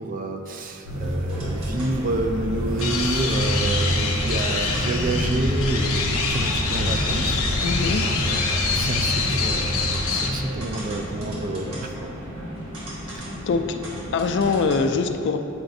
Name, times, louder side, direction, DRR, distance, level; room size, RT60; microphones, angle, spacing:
voice 1, 0.0-7.7 8.0-11.9, right 2 dB, 40° right, 5 dB, 0.3 m, -29 dB
sound 1, 0.8-11.4, equal, 55° right, 1.0 m, -27 dB
sound 2, 1.3-14.8, equal, 75° right, 1.2 m, -35 dB
sound 3, 2.8-10.3, left 4 dB, 80° left, 0.7 m, -26 dB
voice 2, 7.6-8.1 13.1-13.8 14.1-15.4, left 4 dB, 55° left, 6 dB, 0.3 m, -24 dB
7.7 x 4.9 x 2.6 m, 2.7 s
head